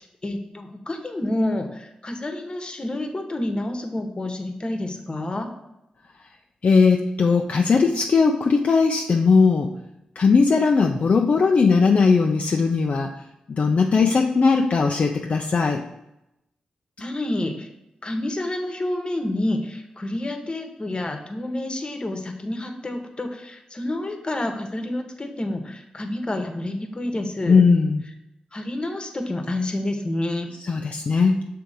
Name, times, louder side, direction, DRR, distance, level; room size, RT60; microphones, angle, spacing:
voice 1, 0.0-5.5 17.0-17.7 18.0-27.6 28.5-30.5, left 1 dB, 35° left, 5 dB, 1.1 m, -29 dB
voice 2, 6.6-9.7 10.2-13.1 13.5-15.8 27.5-28.0 30.6-31.5, left 4 dB, 55° left, 2 dB, 0.5 m, -19 dB
6.3 x 3.4 x 5.0 m, 0.88 s
supercardioid pair, 45°, 3 cm